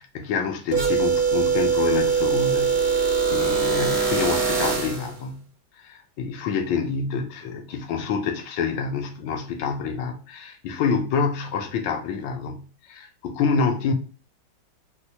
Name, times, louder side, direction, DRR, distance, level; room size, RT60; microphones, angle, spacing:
voice 1, 0.0-2.9 3.3-5.5 5.8-13.9, left 5 dB, 80° left, 1.4 m, -27 dB
sound 1, 0.7-5.1, right 5 dB, 85° right, 0.4 m, -22 dB
4.3 x 2.0 x 2.7 m
omnidirectional pair, 2.2 m